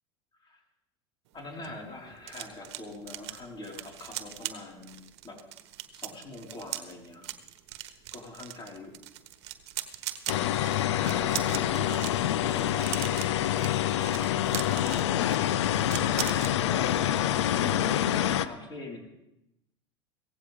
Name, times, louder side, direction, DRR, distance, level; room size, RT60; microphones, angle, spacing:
voice 1, 1.3-5.4 5.9-7.4 8.1-9.0 11.0-15.4 16.0-19.0, left 2 dB, 30° left, -1 dB, 5.1 m, -43 dB
sound 1, 1.3-16.5 16.9-17.1 17.4-17.7, right 14 dB, 70° right, 1.2 m, -40 dB
sound 2, 10.3-18.5, left 11 dB, 80° left, 0.7 m, -26 dB
17.0 x 15.5 x 3.7 m, 0.88 s
hypercardioid pair, 90°, 15 cm